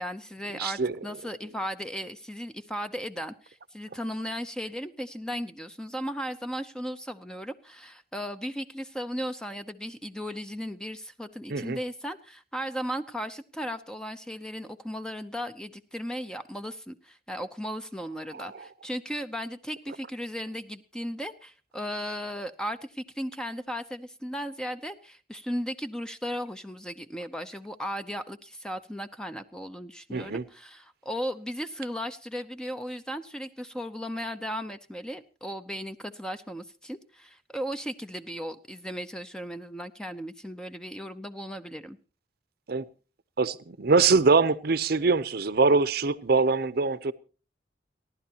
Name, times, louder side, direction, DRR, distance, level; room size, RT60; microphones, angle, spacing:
voice 1, 0.0-42.0, equal, 5° left, 9 dB, 0.6 m, -36 dB
voice 2, 0.5-1.0 11.5-11.8 18.3-18.6 30.1-30.4 42.7-42.9 43.4-47.1, right 4 dB, 60° right, 15 dB, 0.7 m, -23 dB
30.0 x 11.5 x 2.9 m, 0.35 s
head